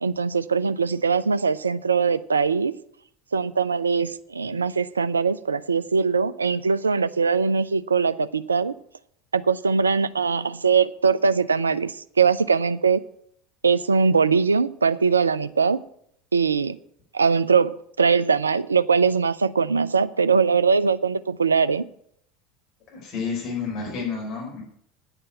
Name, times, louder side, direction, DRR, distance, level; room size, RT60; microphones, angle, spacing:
voice 1, 0.0-2.7 3.3-8.7 9.3-13.0 13.6-15.8 16.3-16.8 17.1-21.8, right 5 dB, 80° right, 14 dB, 0.4 m, -21 dB
voice 2, 22.9-24.6, left 5 dB, 40° left, -2 dB, 4.9 m, -30 dB
9.7 x 6.7 x 8.9 m, 0.68 s
figure-of-eight pair, 75°, 0 cm